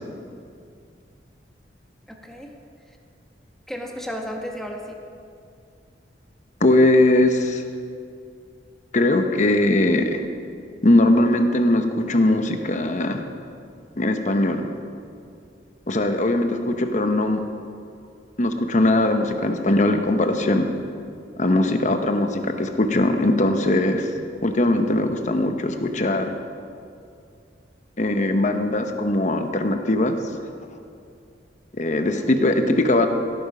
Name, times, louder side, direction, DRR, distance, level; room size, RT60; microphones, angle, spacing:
voice 1, 2.1-2.5 2.9-3.0 3.7-5.0 32.0-32.3, equal, ahead, 1 dB, 1.3 m, -34 dB
voice 2, 6.6-7.6 8.9-10.2 10.8-13.2 14.0-14.7 15.9-17.4 18.4-20.7 21.4-24.1 24.4-26.3 28.0-30.2 31.7-33.1, left 1 dB, 45° left, 6 dB, 1.0 m, -20 dB
16.5 x 9.1 x 5.5 m, 2.4 s
head